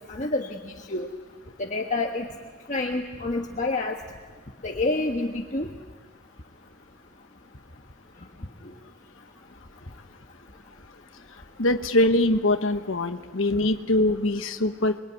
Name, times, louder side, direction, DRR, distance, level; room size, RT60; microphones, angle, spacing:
voice 1, 0.1-0.5 0.9-1.1 1.6-2.3 2.7-3.9 4.6-5.7, left 2 dB, 40° left, 2 dB, 1.4 m, -27 dB
voice 2, 11.6-15.0, left 1 dB, 80° left, 8 dB, 1.3 m, -23 dB
27.0 x 22.5 x 9.5 m, 1.4 s
head